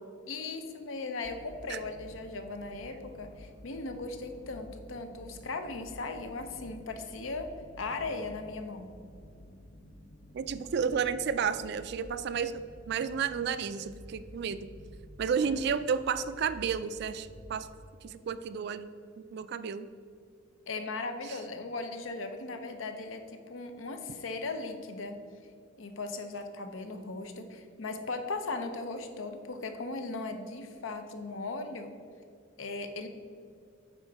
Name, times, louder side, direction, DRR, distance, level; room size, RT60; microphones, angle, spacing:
voice 1, 0.3-9.0 15.4-15.6 20.7-25.2 25.8-31.9 32.6-33.1, left 3 dB, 85° left, 7 dB, 0.7 m, -38 dB
sound 1, 1.2-17.6, equal, 55° left, 0.8 m, -51 dB
voice 2, 10.3-14.6 15.2-17.7 18.0-18.9 19.3-19.9, right 6 dB, 55° right, 13 dB, 0.3 m, -32 dB
8.8 x 3.8 x 4.6 m, 2.3 s
head